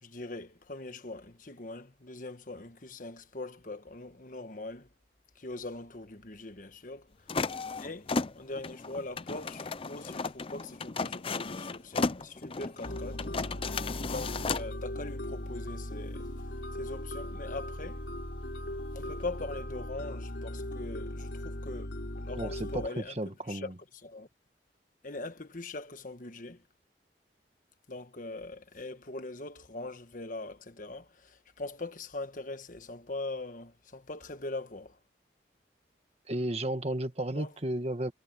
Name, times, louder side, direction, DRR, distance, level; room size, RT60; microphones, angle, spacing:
voice 1, 0.0-4.9 5.3-7.1 7.8-13.3 14.1-16.3 16.7-18.0 18.9-21.9 22.1-23.2 23.4-24.3 25.0-26.6 27.9-35.0 37.3-37.5, left 2 dB, 45° left, 1.3 m, -41 dB
sound 1, 7.3-14.7, left 4 dB, 30° left, 0.5 m, -35 dB
sound 2, 12.8-22.9, left 1 dB, 75° left, 3.2 m, -38 dB
voice 2, 22.4-23.7 36.3-38.1, right 1 dB, 35° right, 1.5 m, -33 dB
head